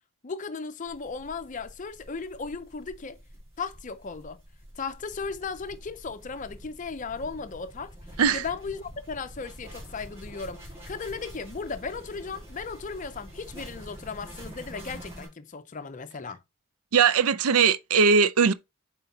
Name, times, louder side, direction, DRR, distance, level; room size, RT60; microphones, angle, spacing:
voice 1, 0.2-3.2 3.6-4.4 4.8-7.9 8.3-16.4, left 4 dB, 35° left, 0.5 m, -36 dB
sound 1, 0.8-15.3, equal, 30° right, 2.5 m, -46 dB
voice 2, 16.9-18.5, right 6 dB, 75° right, 0.5 m, -20 dB
7.8 x 4.4 x 2.7 m
head